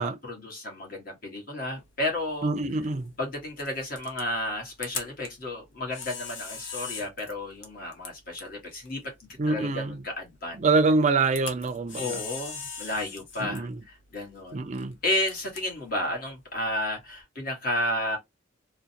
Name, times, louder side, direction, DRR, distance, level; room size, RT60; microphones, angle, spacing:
voice 1, 0.0-2.5 3.2-10.6 12.0-14.6 15.0-18.2, left 1 dB, 50° left, 1.5 m, -32 dB
Camera, 1.7-17.2, left 5 dB, 80° left, 0.9 m, -43 dB
voice 2, 2.4-3.1 9.4-10.0 10.6-12.2 13.4-13.7 14.5-15.0, right 3 dB, 40° right, 0.4 m, -25 dB
3.7 x 2.1 x 2.8 m
head